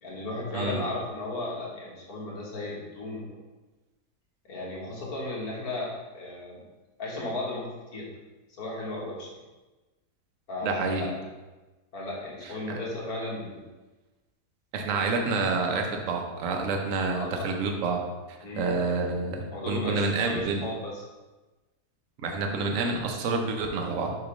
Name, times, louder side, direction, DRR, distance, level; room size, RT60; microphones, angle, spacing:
voice 1, 0.0-3.4 4.4-6.7 7.0-8.1 8.6-9.3 10.5-11.2 11.9-13.6 17.1-17.5 18.4-18.7 19.5-21.0, left 2 dB, 70° left, -4 dB, 1.9 m, -35 dB
voice 2, 0.5-0.9 10.6-11.1 12.7-12.8 14.7-18.0 18.3-20.6 22.2-24.1, right 3 dB, 60° right, 2 dB, 1.0 m, -28 dB
6.5 x 3.0 x 5.0 m, 1.2 s
omnidirectional pair, 1.7 m